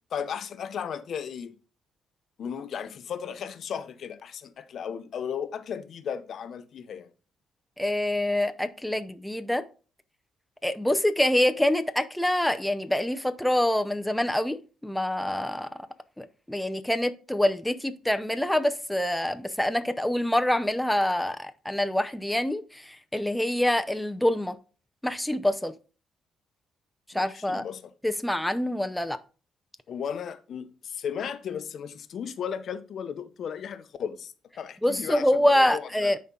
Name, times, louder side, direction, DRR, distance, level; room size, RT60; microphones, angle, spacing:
voice 1, 0.1-1.5 2.4-7.1 27.1-27.9 29.9-36.1, left 7 dB, 60° left, 0.7 m, -35 dB
voice 2, 7.8-9.6 10.6-15.7 16.2-24.6 25.0-25.7 27.1-27.6 28.0-29.2 34.8-36.2, left 1 dB, 5° left, 0.6 m, -26 dB
10.5 x 4.3 x 3.8 m
cardioid pair, 90°, 0 cm